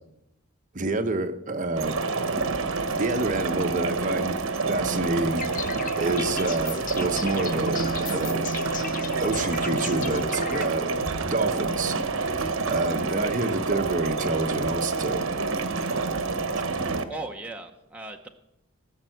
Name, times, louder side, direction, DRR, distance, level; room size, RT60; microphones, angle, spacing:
voice 1, 0.7-2.0 3.0-4.4 4.7-5.7 6.0-7.8 8.1-8.5 9.2-15.3 16.5-16.6, right 2 dB, 35° right, 7 dB, 0.9 m, -28 dB
sound 1, 1.8-17.0, right 4 dB, 65° right, 1.1 m, -28 dB
sound 2, 5.4-10.7, left 5 dB, 40° left, 0.7 m, -36 dB
Bass guitar, 7.5-13.7, right 1 dB, 80° right, 0.7 m, -39 dB
voice 2, 16.8-18.3, right 2 dB, 5° right, 2 dB, 0.8 m, -38 dB
18.0 x 6.4 x 7.7 m, 0.84 s
head